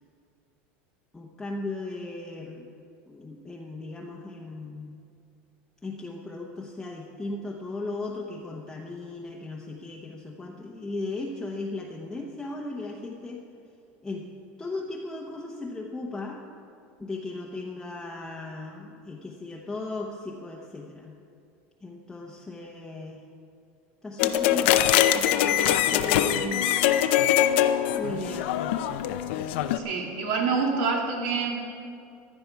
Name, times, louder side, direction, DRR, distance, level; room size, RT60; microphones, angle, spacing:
voice 1, 1.1-2.7 3.1-5.0 5.8-13.4 14.0-14.3 14.6-16.4 17.0-21.1 21.8-23.2 24.0-24.8 25.1-26.7 27.9-28.6, left 2 dB, 10° left, -2 dB, 0.9 m, -36 dB
sound 1, 24.2-29.8, left 11 dB, 75° left, 0.7 m, -23 dB
voice 2, 29.8-31.5, right 5 dB, 65° right, 0 dB, 2.7 m, -26 dB
15.5 x 11.0 x 4.6 m, 2.5 s
supercardioid pair, 145°, 6 cm